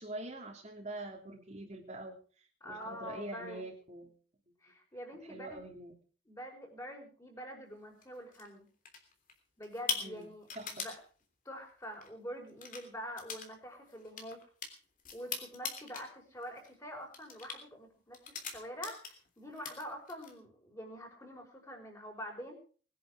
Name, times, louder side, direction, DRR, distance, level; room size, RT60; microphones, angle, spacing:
voice 1, 0.0-2.1 2.6-4.1 5.3-5.9 10.0-10.3 10.6-10.8, right 2 dB, 35° right, 0 dB, 3.0 m, -44 dB
voice 2, 2.6-3.7 4.6-5.6 6.3-8.7 9.6-11.0 11.5-14.4 15.1-18.2 18.5-22.6, equal, 15° left, 1 dB, 5.2 m, -45 dB
sound 1, 8.0-8.5 8.9-9.3 9.6-11.0 11.9-12.1 12.5-12.8 13.2-13.5 13.7-16.1 16.4-16.7 17.1-17.6 18.1-19.3 19.5-20.3, left 6 dB, 45° left, 3.3 m, -40 dB
21.0 x 10.5 x 5.0 m, 0.41 s
head